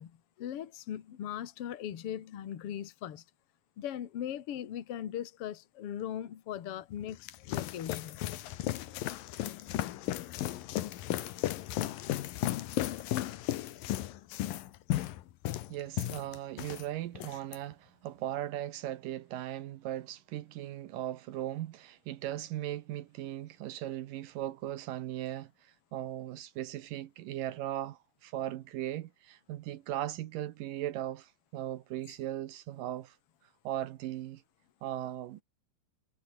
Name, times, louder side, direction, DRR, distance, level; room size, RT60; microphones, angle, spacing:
voice 1, 0.0-3.2 3.8-8.2, left 10 dB, 50° left, 2.0 m, -39 dB
sound 1, 6.9-16.9 17.2-17.6, left 14 dB, 70° left, 2.7 m, -35 dB
voice 2, 15.7-33.2 33.6-34.4 34.8-35.4, right 13 dB, 70° right, 2.4 m, -38 dB
omnidirectional pair, 4.4 m